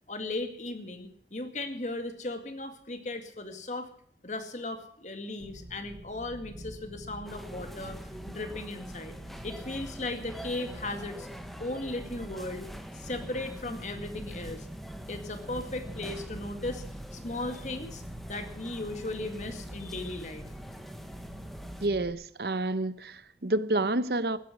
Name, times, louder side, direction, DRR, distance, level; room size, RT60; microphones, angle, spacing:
voice 1, 0.1-3.9 4.2-8.0 8.3-9.2 9.4-11.3 11.6-12.7 12.9-14.7 15.1-16.8 17.1-20.5, left 2 dB, 40° left, 2.1 m, -37 dB
sound 1, 5.4-22.1, right 1 dB, 40° right, 1.3 m, -46 dB
sound 2, 7.2-21.9, equal, ahead, 1.2 m, -45 dB
voice 2, 21.8-24.4, right 2 dB, 60° right, 0.9 m, -29 dB
16.0 x 12.0 x 6.2 m
head